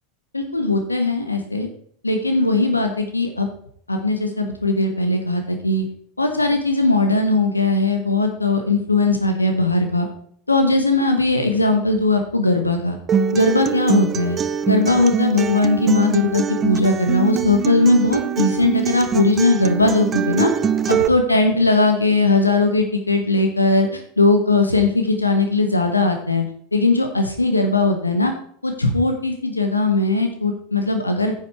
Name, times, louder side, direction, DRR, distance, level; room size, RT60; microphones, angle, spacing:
voice 1, 0.3-1.7 2.0-3.5 3.9-5.8 6.2-10.1 10.5-13.0 13.3-14.4 14.7-20.5 20.9-26.4 26.7-28.3 28.6-31.3, left 2 dB, 85° left, 5 dB, 1.2 m, -19 dB
Acoustic guitar, 13.1-21.1, right 7 dB, 25° right, 0.6 m, -23 dB
9.8 x 7.1 x 4.6 m, 0.64 s
figure-of-eight pair, 85°, 0 cm